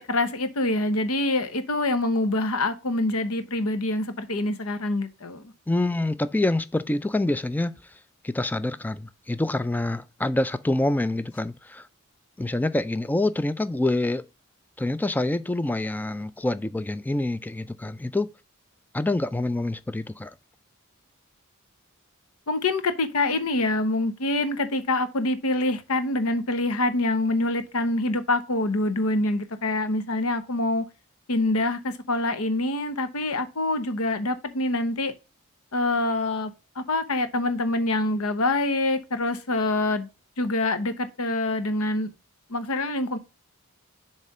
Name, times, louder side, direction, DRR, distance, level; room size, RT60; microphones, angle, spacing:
voice 1, 0.0-5.4 22.5-30.9 31.3-35.1 35.7-36.5 36.8-40.1 40.4-42.1 42.5-43.2, left 2 dB, 80° left, 0.9 m, -25 dB
voice 2, 5.7-7.8 8.2-11.9 12.4-14.2 14.8-18.3 18.9-20.3, left 2 dB, 10° left, 0.3 m, -26 dB
7.3 x 3.3 x 5.4 m
head